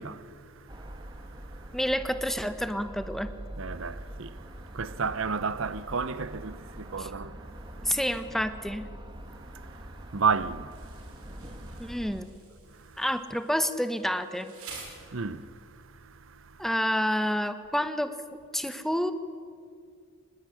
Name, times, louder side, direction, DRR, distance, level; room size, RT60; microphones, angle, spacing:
voice 1, 0.0-1.8 3.5-8.0 9.2-12.0 12.7-13.0 15.0-16.6, right 5 dB, 65° right, 0.8 m, -34 dB
sound 1, 0.7-12.2, right 1 dB, 20° right, 1.6 m, -44 dB
voice 2, 1.7-3.3 7.0-7.1 7.8-8.9 11.8-12.3 13.0-14.5 16.6-18.1 18.5-19.1, equal, ahead, 1.0 m, -29 dB
Insect, 10.7-15.7, right 4 dB, 80° right, 6.8 m, -49 dB
25.5 x 20.5 x 9.9 m
head